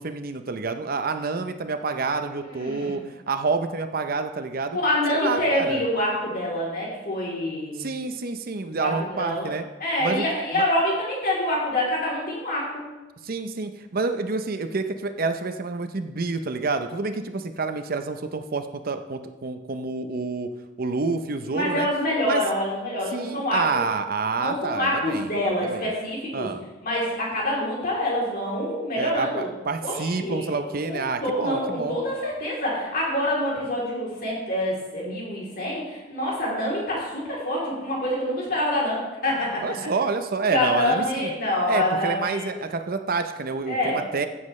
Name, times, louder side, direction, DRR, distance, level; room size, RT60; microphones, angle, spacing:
voice 1, 0.0-4.8 5.1-5.9 7.8-9.6 10.0-10.2 10.5-10.6 13.2-20.5 20.8-21.9 22.3-22.5 23.1-25.3 25.6-25.9 26.3-26.6 29.0-32.0 39.6-41.3 41.7-44.3, right 4 dB, 50° right, 8 dB, 0.6 m, -28 dB
voice 2, 2.4-3.0 4.7-7.9 8.8-9.5 9.8-12.8 21.4-23.8 24.4-26.5 26.8-29.5 29.8-39.6 40.5-42.6 43.7-44.0, left 1 dB, 50° left, -5 dB, 3.2 m, -26 dB
15.5 x 7.5 x 3.2 m, 1.1 s
head